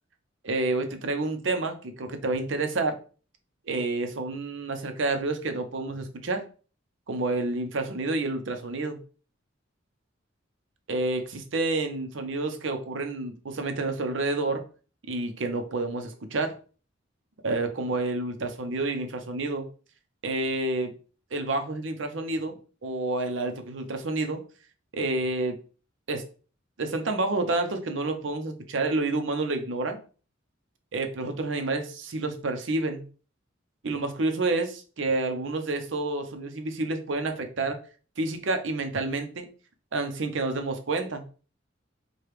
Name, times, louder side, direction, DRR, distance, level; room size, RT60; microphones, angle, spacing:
voice 1, 0.4-3.0 3.7-6.4 7.1-9.0 10.9-14.6 15.1-16.5 17.4-19.7 20.2-20.9 21.3-24.4 24.9-25.6 26.1-26.2 26.8-30.0 30.9-33.1 33.8-37.8 38.2-39.5 39.9-41.2, right 2 dB, 70° right, 6 dB, 0.6 m, -29 dB
4.8 x 2.3 x 3.1 m, 0.38 s
head